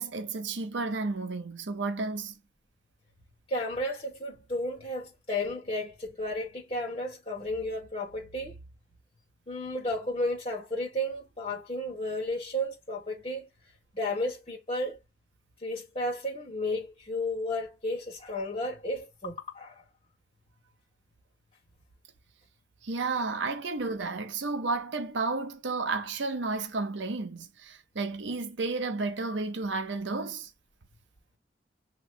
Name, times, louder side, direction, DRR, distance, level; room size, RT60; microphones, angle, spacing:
voice 1, 0.0-2.3 22.8-30.5, right 3 dB, 85° right, 0.7 m, -32 dB
voice 2, 3.5-8.6 9.5-13.5 13.9-15.0 15.6-19.7 23.1-23.2, left 1 dB, 30° left, 1.7 m, -33 dB
6.2 x 3.0 x 2.6 m
head